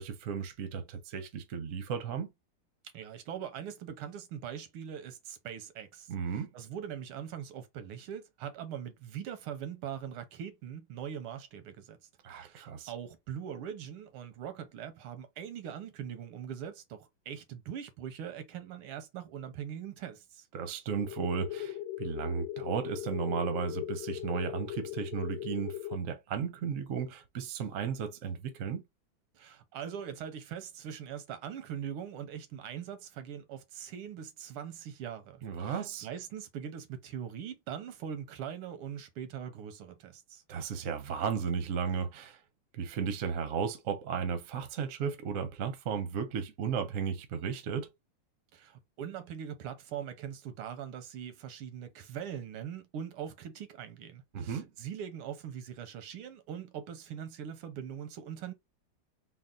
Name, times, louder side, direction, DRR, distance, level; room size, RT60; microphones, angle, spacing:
voice 1, 0.0-2.3 6.1-6.5 12.2-12.9 20.5-28.8 35.4-36.1 40.5-42.4 42.7-47.9 54.3-54.7, right 6 dB, 60° right, 0.8 m, -34 dB
voice 2, 2.9-6.1 6.5-12.0 12.3-20.5 29.3-40.4 48.5-58.5, right 8 dB, 85° right, 1.7 m, -42 dB
sound 1, 21.0-26.0, left 13 dB, 80° left, 1.4 m, -39 dB
4.0 x 2.3 x 3.7 m
omnidirectional pair, 2.4 m